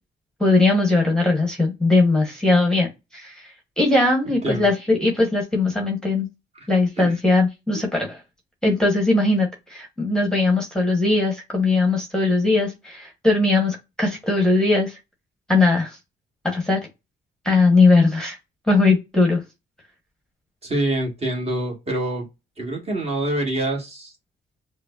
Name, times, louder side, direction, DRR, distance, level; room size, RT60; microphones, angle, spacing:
voice 1, 0.4-3.5 3.8-6.3 6.7-8.2 8.6-15.0 15.5-16.0 16.4-16.8 17.4-18.4 18.7-19.4, left 3 dB, 5° left, 1 dB, 1.1 m, -19 dB
voice 2, 4.2-4.7 7.0-7.2 7.7-7.9 20.6-22.3 22.6-24.1, right 1 dB, 30° right, 0 dB, 1.6 m, -26 dB
4.8 x 2.1 x 2.5 m, 0.24 s
cardioid pair, 90°, 20 cm